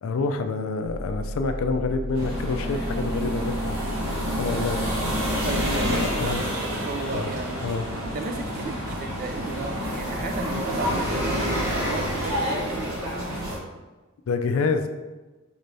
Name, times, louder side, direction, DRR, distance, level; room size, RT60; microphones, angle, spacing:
voice 1, 0.0-3.8 4.2-4.8 5.8-6.4 7.1-7.3 7.6-7.9 14.3-14.9, left 4 dB, 75° left, 7 dB, 0.4 m, -27 dB
sound 1, 0.8-6.4, equal, 5° right, 0.8 m, -34 dB
sound 2, 2.1-13.6, equal, 75° right, 1.2 m, -28 dB
voice 2, 5.4-7.6 8.0-13.0, right 3 dB, 45° right, 5 dB, 0.4 m, -34 dB
4.4 x 3.2 x 2.6 m, 1.2 s
head